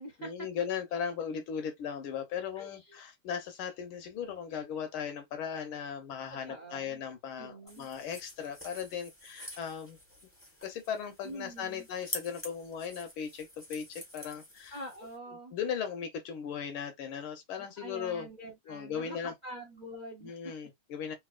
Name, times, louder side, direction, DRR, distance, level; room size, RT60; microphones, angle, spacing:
voice 1, 0.2-10.0 10.6-14.8 15.5-18.3 18.7-19.3 20.2-21.1, left 7 dB, 85° left, 1.8 m, -37 dB
voice 2, 2.6-3.0 6.3-7.0 7.4-7.9 11.2-11.9 14.7-15.5 17.6-20.3, right 1 dB, 45° right, 0.5 m, -45 dB
sound 1, 7.7-15.2, left 1 dB, 10° left, 0.8 m, -47 dB
4.0 x 2.7 x 2.4 m
omnidirectional pair, 2.3 m